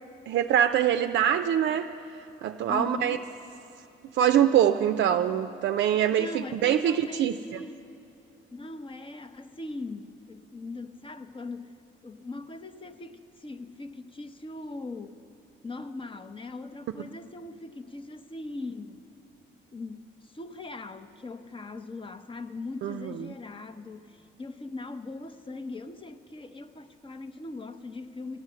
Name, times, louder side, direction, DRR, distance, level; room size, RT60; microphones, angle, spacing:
voice 1, 0.3-1.9 2.4-3.2 4.1-7.3 17.0-17.1 22.8-23.3, right 10 dB, 65° right, 7 dB, 0.4 m, -24 dB
voice 2, 2.7-3.3 6.1-7.8 8.5-15.2 15.6-19.0 19.7-28.4, left 2 dB, 25° left, 9 dB, 0.7 m, -40 dB
14.0 x 9.7 x 7.5 m, 2.8 s
cardioid pair, 90°, 20 cm